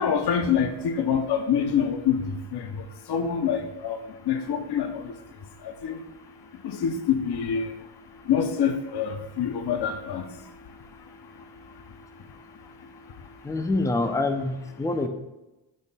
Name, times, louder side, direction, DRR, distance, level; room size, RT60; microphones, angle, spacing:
voice 1, 0.0-2.8 3.1-4.0 4.3-5.1 5.6-6.0 6.6-7.7 8.3-10.2, left 7 dB, 55° left, 7 dB, 0.7 m, -26 dB
voice 2, 13.4-15.1, left 2 dB, 10° left, 7 dB, 0.4 m, -26 dB
6.4 x 3.2 x 5.5 m, 1.0 s
wide cardioid pair, 135°, 46 cm